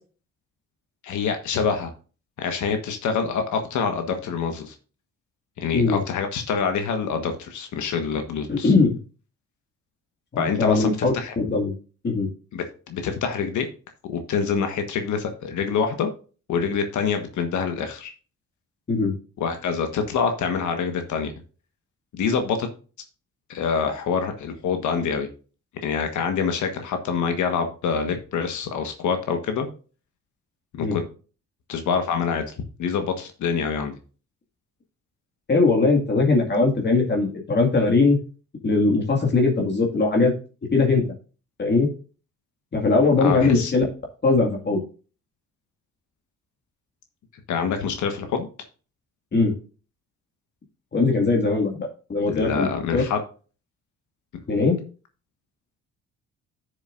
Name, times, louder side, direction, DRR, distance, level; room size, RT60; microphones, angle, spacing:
voice 1, 1.0-1.9 2.4-4.7 5.6-8.7 10.4-11.3 12.5-13.7 14.1-16.1 16.5-18.1 19.4-21.3 22.2-22.7 23.5-25.3 25.8-29.7 30.8-31.0 31.7-32.5 32.8-33.9 43.2-43.7 47.5-48.5 52.3-53.2, left 6 dB, 75° left, 6 dB, 1.4 m, -26 dB
voice 2, 8.5-9.0 10.3-11.7 12.0-12.3 18.9-19.2 30.8-31.0 35.5-38.2 38.6-40.3 40.7-41.0 41.6-41.9 42.7-43.8 44.2-44.8 49.3-49.5 50.9-53.0 54.5-54.8, left 3 dB, 35° left, 0 dB, 2.1 m, -20 dB
11.0 x 6.8 x 2.6 m, 0.36 s
cardioid pair, 90°, 30 cm